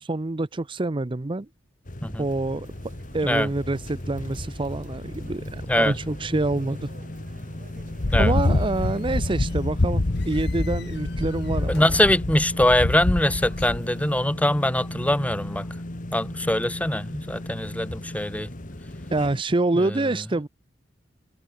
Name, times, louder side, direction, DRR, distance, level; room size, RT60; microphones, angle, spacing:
voice 1, 0.0-1.5 2.2-2.7 3.1-6.9 8.2-11.8 19.1-20.5, right 2 dB, 30° right, 0.6 m, -26 dB
sound 1, 1.9-19.4, left 1 dB, 45° left, 2.0 m, -36 dB
sound 2, 2.6-14.2, right 2 dB, 45° right, 5.5 m, -51 dB
sound 3, 7.8-13.8, left 2 dB, 60° left, 1.1 m, -26 dB
voice 2, 11.7-15.7 16.1-18.5 19.8-20.0, left 1 dB, 10° left, 1.4 m, -23 dB
head